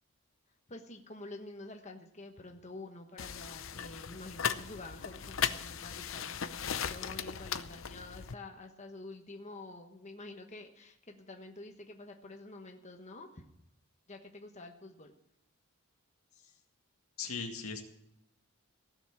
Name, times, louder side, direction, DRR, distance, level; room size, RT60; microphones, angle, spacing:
voice 1, 0.7-13.4 14.1-15.1, left 2 dB, 30° left, 3 dB, 1.3 m, -48 dB
sound 1, 3.2-8.3, left 8 dB, 65° left, 0.7 m, -37 dB
voice 2, 17.2-17.8, left 5 dB, 85° left, 3 dB, 2.0 m, -38 dB
16.5 x 7.3 x 8.6 m, 0.79 s
head